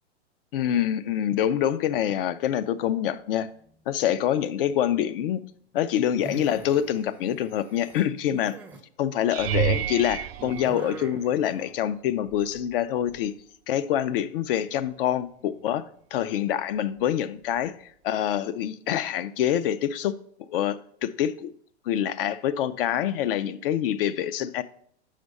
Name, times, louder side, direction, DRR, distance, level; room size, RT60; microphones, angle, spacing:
voice 1, 0.5-3.5 3.9-5.4 5.7-8.6 9.0-13.3 13.7-15.8 16.1-17.7 18.0-20.1 20.5-21.5 21.9-24.6, left 10 dB, 55° left, 0.5 m, -26 dB
sound 1, 2.3-3.1 3.4-3.9 6.1-8.8 10.4-11.7, right 3 dB, 5° right, 0.5 m, -43 dB
sound 2, 9.3-11.6 12.3-12.7 13.1-13.2 17.6-17.7, right 14 dB, 60° right, 0.5 m, -30 dB
6.1 x 5.1 x 5.3 m
hypercardioid pair, 120°, 35 cm